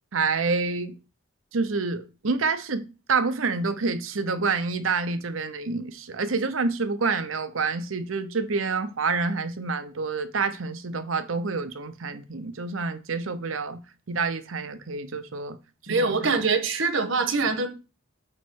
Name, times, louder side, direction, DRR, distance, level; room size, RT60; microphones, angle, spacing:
voice 1, 0.1-0.9 1.5-13.8 14.1-15.6 15.8-16.4, right 4 dB, 90° right, 0.8 m, -28 dB
voice 2, 15.9-17.7, right 4 dB, 70° right, 1.3 m, -24 dB
8.7 x 3.1 x 6.3 m
head